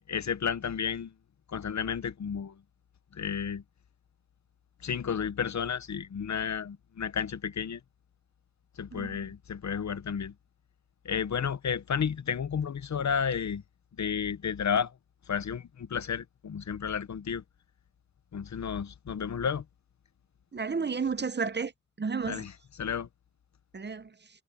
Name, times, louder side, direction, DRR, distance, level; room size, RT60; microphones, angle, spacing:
voice 1, 0.1-1.1 1.5-2.6 3.1-3.6 4.8-7.8 8.8-10.3 11.0-13.6 14.0-15.0 15.3-17.4 18.3-19.6 22.3-23.1, left 7 dB, 75° left, 0.8 m, -32 dB
voice 2, 20.5-21.7 22.0-22.4 23.7-24.1, right 5 dB, 35° right, 0.7 m, -31 dB
wide cardioid pair, 95°, 29 cm